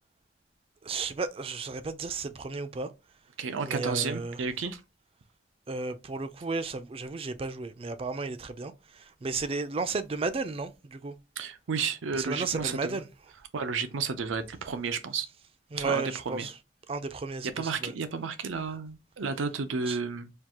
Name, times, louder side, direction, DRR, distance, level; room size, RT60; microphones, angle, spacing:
voice 1, 0.8-2.9 3.6-4.4 5.7-8.7 9.2-11.1 12.1-13.1 15.7-16.5 16.9-17.9 19.8-20.0, right 4 dB, 30° right, 0.4 m, -33 dB
voice 2, 3.4-4.8 11.4-13.0 13.5-15.3 15.7-16.5 17.6-20.3, right 5 dB, 85° right, 0.6 m, -32 dB
4.5 x 2.4 x 3.5 m
head